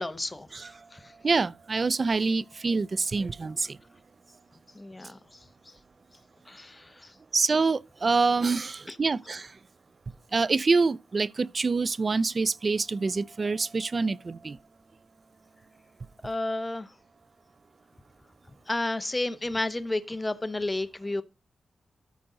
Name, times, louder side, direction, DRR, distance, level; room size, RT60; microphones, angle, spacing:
voice 1, 0.0-1.1 4.7-5.7 6.5-7.2 8.9-9.0 16.2-16.9 18.7-21.2, left 2 dB, 20° left, 0.8 m, -32 dB
voice 2, 1.2-3.7 7.3-9.5 10.3-14.6, right 4 dB, 40° right, 0.4 m, -26 dB
13.5 x 5.2 x 3.8 m
wide cardioid pair, 105°, 0 cm